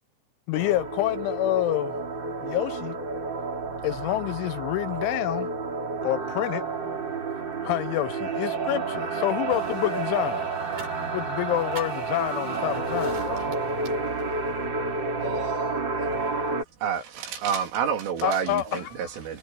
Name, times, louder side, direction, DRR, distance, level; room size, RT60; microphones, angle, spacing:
voice 1, 0.5-2.0 2.4-3.0 3.8-5.5 6.0-6.6 7.6-10.5 11.1-13.5 18.2-19.1, left 16 dB, 80° left, 2.8 m, -27 dB
sound 1, 0.5-16.6, right 3 dB, 25° right, 3.1 m, -30 dB
sound 2, 9.1-16.5, right 1 dB, 5° right, 6.1 m, -51 dB
sound 3, 9.5-14.7, right 5 dB, 45° right, 8.1 m, -48 dB
voice 2, 15.2-16.6 18.2-18.8, right 5 dB, 60° right, 6.2 m, -42 dB
voice 3, 16.8-19.4, right 7 dB, 75° right, 5.6 m, -29 dB
omnidirectional pair, 5.8 m